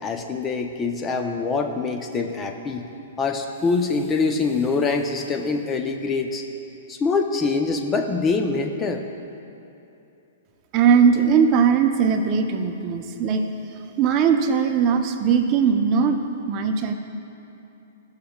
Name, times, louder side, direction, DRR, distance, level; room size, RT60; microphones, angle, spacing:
voice 1, 0.0-2.9 3.2-6.4 6.9-9.0, left 4 dB, 20° left, 5 dB, 0.7 m, -24 dB
voice 2, 10.7-13.5 14.0-16.9, right 6 dB, 35° right, 4 dB, 0.8 m, -19 dB
16.0 x 6.5 x 2.4 m, 2.8 s
hypercardioid pair, 120°, 0 cm